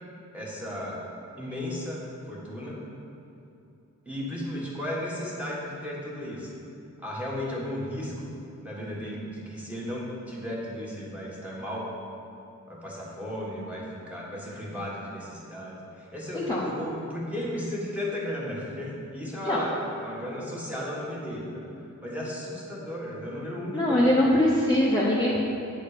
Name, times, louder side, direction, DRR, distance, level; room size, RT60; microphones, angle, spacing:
voice 1, 0.3-1.0 1.4-2.8 4.0-6.5 7.0-8.3 8.6-11.9 12.7-21.6 22.0-24.1, left 1 dB, 5° right, -5 dB, 1.6 m, -35 dB
voice 2, 23.7-25.4, left 1 dB, 15° left, -7 dB, 0.9 m, -22 dB
9.1 x 4.3 x 6.6 m, 2.8 s
wide cardioid pair, 160°, 31 cm